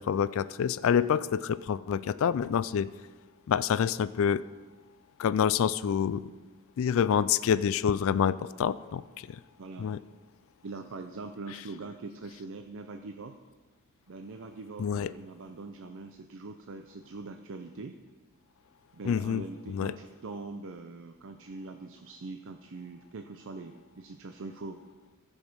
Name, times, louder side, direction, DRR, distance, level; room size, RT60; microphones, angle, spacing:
voice 1, 0.0-2.9 3.5-4.4 5.2-6.2 6.8-9.4 9.8-10.0 14.8-15.1 19.1-19.9, left 8 dB, 65° left, 16 dB, 0.3 m, -27 dB
voice 2, 9.6-9.9 10.6-13.4 14.1-18.0 18.9-24.8, right 3 dB, 60° right, 6 dB, 0.5 m, -42 dB
14.5 x 5.4 x 6.1 m, 1.3 s
head